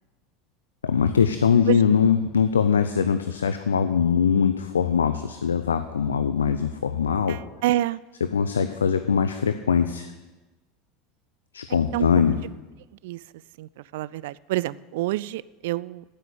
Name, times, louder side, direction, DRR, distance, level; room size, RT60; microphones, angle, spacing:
voice 1, 0.8-7.4 8.3-10.1 11.5-12.4, left 7 dB, 80° left, 9 dB, 0.5 m, -22 dB
voice 2, 7.3-8.0 11.9-12.1 13.0-13.2 13.6-16.0, right 15 dB, 65° right, 19 dB, 0.3 m, -27 dB
9.5 x 9.1 x 8.4 m, 1.1 s
figure-of-eight pair, 75°, 0 cm